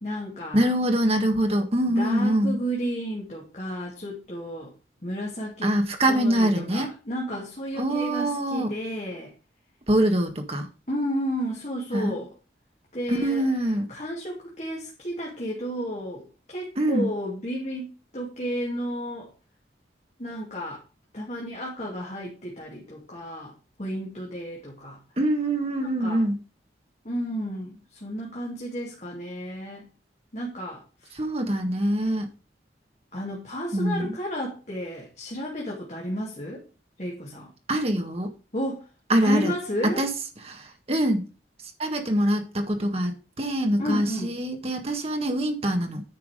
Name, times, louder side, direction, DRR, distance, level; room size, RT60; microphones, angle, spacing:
voice 1, 0.0-0.7 1.9-4.7 5.0-5.8 6.1-9.3 10.9-12.3 12.9-13.4 13.9-19.3 20.2-20.8 21.1-23.5 23.8-25.0 25.8-26.3 27.0-29.9 30.3-31.2 33.1-36.6 37.0-37.5 38.5-38.9 39.2-40.0 43.8-44.4, equal, 40° left, -2 dB, 2.5 m, -32 dB
voice 2, 0.5-2.6 5.6-6.9 7.8-8.7 9.9-10.7 11.9-12.2 13.1-13.9 16.8-17.1 25.2-26.4 31.1-32.3 33.7-34.2 37.7-38.3 39.1-39.5 39.8-40.1 40.5-41.3 41.8-46.0, right 1 dB, 35° right, 4 dB, 1.7 m, -24 dB
9.7 x 5.9 x 5.0 m, 0.33 s
head